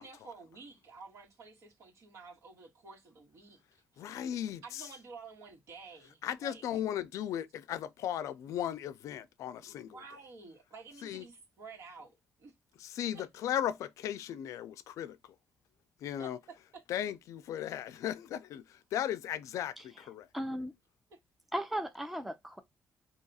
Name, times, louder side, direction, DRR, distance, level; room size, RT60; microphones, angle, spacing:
voice 1, 0.0-3.6 3.9-4.2 4.6-6.8 9.9-12.1 12.4-12.5 13.1-13.2 16.2-16.8 21.1-21.2, right 4 dB, 65° right, 1.6 m, -51 dB
voice 2, 4.0-4.9 6.2-10.0 11.0-11.2 12.8-15.2 16.0-16.4 16.9-20.3, left 10 dB, 90° left, 0.4 m, -36 dB
voice 3, 20.3-20.7 21.5-22.6, equal, 5° right, 0.5 m, -36 dB
2.8 x 2.4 x 4.0 m
cardioid pair, 130°, 5 cm